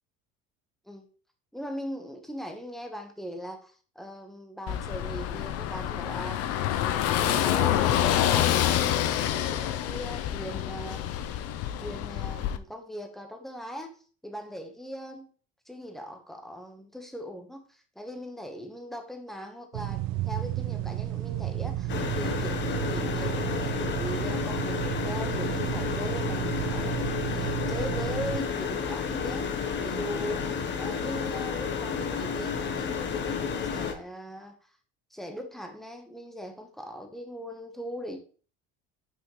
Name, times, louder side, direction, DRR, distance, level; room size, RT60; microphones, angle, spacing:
voice 1, 1.5-6.4 6.9-11.1 11.8-13.9 14.2-15.3 15.7-26.9 27.3-34.6 35.1-38.2, equal, ahead, 4 dB, 1.1 m, -40 dB
Car passing by / Engine, 4.7-12.6, left 11 dB, 55° left, 0.6 m, -27 dB
sound 1, 19.7-28.4, right 14 dB, 70° right, 0.6 m, -32 dB
sound 2, 21.9-33.9, left 6 dB, 40° left, 0.9 m, -31 dB
6.1 x 5.0 x 3.1 m, 0.39 s
supercardioid pair, 115°, 29 cm